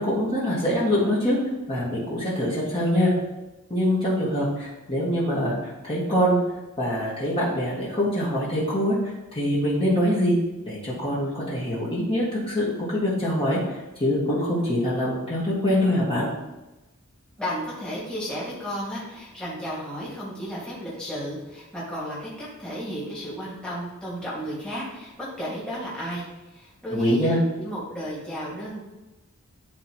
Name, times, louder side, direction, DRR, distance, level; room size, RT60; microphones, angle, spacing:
voice 1, 0.0-1.4 1.7-3.1 3.7-6.4 6.8-10.4 10.6-16.3 26.9-27.4, equal, 25° left, -8 dB, 1.7 m, -24 dB
voice 2, 17.4-28.8, equal, 5° left, -7 dB, 2.0 m, -33 dB
10.5 x 4.1 x 3.0 m, 1.0 s
head